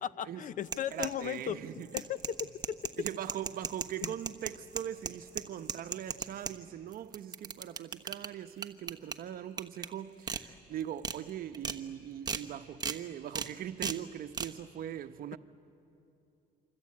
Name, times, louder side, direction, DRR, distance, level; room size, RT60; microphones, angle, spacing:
voice 1, 0.0-1.6 1.9-2.8 4.0-4.1, left 9 dB, 50° left, 0.8 m, -36 dB
sound 1, 0.6-1.4 1.8-6.5 6.9-8.3 8.6-9.1 9.6-9.9 10.3-10.4 10.8-11.2 11.5-11.8 12.3-12.4 12.8-13.0 13.3-13.5 13.8-14.0 14.3-14.5, right 5 dB, 25° right, 1.1 m, -36 dB
voice 2, 0.9-1.9 3.0-15.4, right 11 dB, 60° right, 1.0 m, -41 dB
27.0 x 25.5 x 8.6 m
cardioid pair, 110°, 17 cm